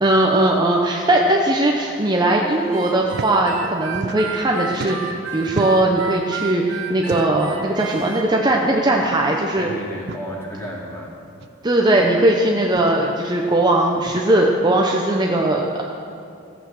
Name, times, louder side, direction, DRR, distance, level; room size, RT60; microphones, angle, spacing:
voice 1, 0.0-9.7 11.6-15.8, right 1 dB, 20° right, -1 dB, 0.7 m, -19 dB
Harmonica, 2.7-8.2, right 6 dB, 75° right, 1.0 m, -32 dB
sound 1, 3.0-3.3 3.6-4.5 4.7-6.0 7.0-7.5 8.5-8.6 9.0-9.1 9.9-10.2 11.4-11.5 12.6-12.9 14.0-14.3, right 4 dB, 55° right, 0.5 m, -33 dB
voice 2, 9.6-11.1, equal, 15° left, -5 dB, 2.6 m, -32 dB
15.0 x 8.2 x 6.3 m, 2.5 s
head